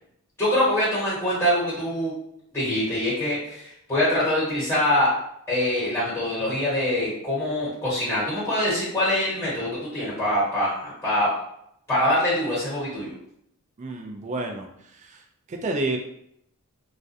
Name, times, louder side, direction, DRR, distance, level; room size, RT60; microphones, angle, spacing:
voice 1, 0.4-2.1 2.5-5.1 5.5-11.3 11.9-13.1, left 1 dB, 10° left, -9 dB, 1.2 m, -24 dB
voice 2, 13.8-15.2 15.5-16.0, right 2 dB, 35° right, 3 dB, 0.3 m, -30 dB
2.3 x 2.1 x 2.6 m, 0.73 s
head